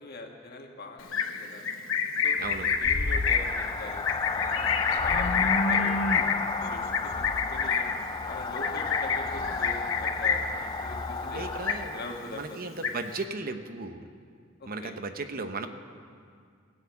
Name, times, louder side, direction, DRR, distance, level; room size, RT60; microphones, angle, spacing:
voice 1, 0.0-1.6 2.2-3.5 3.8-5.9 6.5-7.9 8.3-11.5 11.9-12.6 14.6-14.9, left 2 dB, 55° left, 2 dB, 1.6 m, -43 dB
Livestock farm animals working animals, 1.0-10.6 10.9-11.3 11.5-12.2 12.5-13.2, left 6 dB, 80° left, 1.0 m, -28 dB
sound 1, 2.4-12.4, left 4 dB, 20° left, 0.4 m, -33 dB
voice 2, 11.2-12.0 12.3-14.1 14.7-15.7, right 3 dB, 50° right, 8 dB, 0.9 m, -36 dB
18.0 x 7.0 x 8.3 m, 2.2 s
head